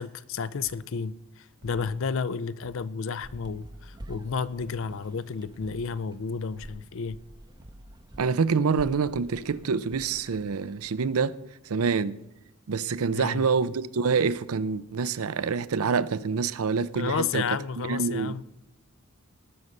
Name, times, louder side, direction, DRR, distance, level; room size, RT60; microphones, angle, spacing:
voice 1, 0.0-7.2 13.1-13.5 16.9-18.4, left 5 dB, 60° left, 0.5 m, -32 dB
sound 1, 0.6-0.8 1.6-2.0 2.6-2.8 3.6-4.0 4.6-4.8 5.6-6.0 6.6-6.8 7.6-8.0, equal, 60° right, 1.6 m, -50 dB
sound 2, 3.2-11.0, right 1 dB, 20° right, 0.6 m, -48 dB
voice 2, 8.2-11.4 11.7-12.2 12.7-17.4 17.8-18.4, right 5 dB, 80° right, 0.5 m, -26 dB
18.0 x 6.5 x 5.4 m
head